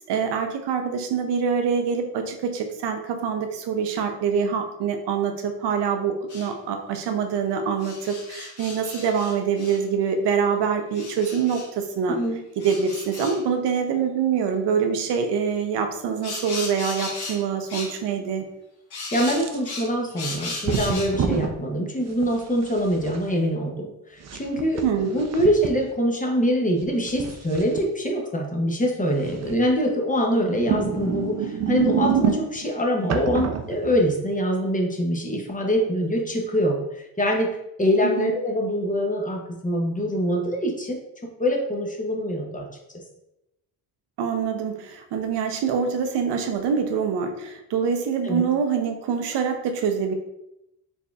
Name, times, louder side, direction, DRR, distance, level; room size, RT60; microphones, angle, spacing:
voice 1, 0.1-12.2 12.6-18.4 24.8-25.2 38.0-38.3 44.2-50.1, right 6 dB, 90° right, 6 dB, 0.6 m, -25 dB
sound 1, 6.3-6.5 7.8-9.8 10.9-11.7 12.6-13.4 16.2-17.4 17.7-17.9 18.9-21.1, left 3 dB, 65° left, 1.2 m, -35 dB
voice 2, 12.1-12.4 19.1-37.5 37.8-41.0 41.4-42.7 48.2-48.4, equal, 20° left, 1 dB, 0.7 m, -24 dB
sound 2, 19.2-19.9 20.7-21.5 22.2-23.2 24.2-25.7 26.8-27.8 29.3-29.7 30.5-32.7 33.1-34.2, right 7 dB, 45° right, 0.4 m, -27 dB
4.1 x 3.3 x 2.3 m, 0.86 s
cardioid pair, 100°, 40 cm